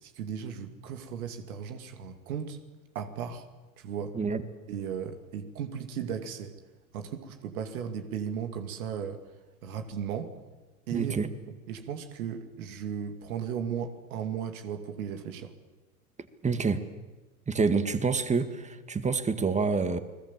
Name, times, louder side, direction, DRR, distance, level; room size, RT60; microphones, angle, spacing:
voice 1, 0.0-2.6 2.9-3.5 3.8-4.2 4.7-6.5 6.9-9.2 9.6-10.3 10.9-11.2 11.7-15.5, right 7 dB, 75° right, 6 dB, 2.7 m, -36 dB
voice 2, 10.9-11.3 16.4-16.8 17.5-20.0, right 4 dB, 15° right, 10 dB, 1.9 m, -27 dB
30.0 x 20.5 x 7.5 m, 1.2 s
hypercardioid pair, 100°, 44 cm